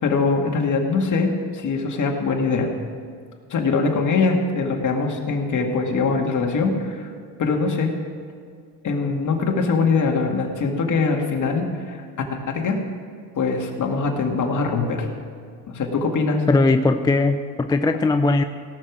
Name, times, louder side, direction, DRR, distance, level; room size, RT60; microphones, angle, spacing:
voice 1, 0.0-2.7 3.5-7.1 7.4-7.9 8.8-12.8 13.4-15.1 15.7-16.4, left 4 dB, 45° left, 2 dB, 2.1 m, -22 dB
voice 2, 16.5-18.4, left 3 dB, 10° left, 8 dB, 0.4 m, -19 dB
17.0 x 6.7 x 7.3 m, 2.2 s
cardioid pair, 110°, 43 cm